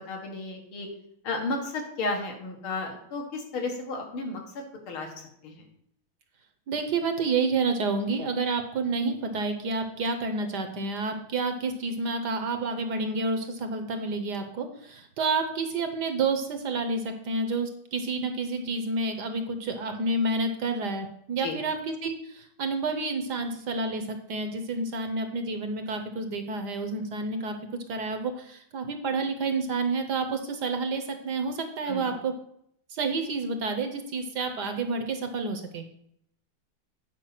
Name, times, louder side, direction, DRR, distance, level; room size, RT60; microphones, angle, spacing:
voice 1, 0.1-0.9 1.2-4.4 4.9-5.1 5.4-5.6 21.4-21.6 31.9-32.1, left 3 dB, 80° left, 1 dB, 2.5 m, -33 dB
voice 2, 6.7-27.5 27.9-32.3 32.9-35.9, right 3 dB, 60° right, 7 dB, 1.3 m, -29 dB
9.1 x 5.2 x 5.8 m, 0.71 s
omnidirectional pair, 2.3 m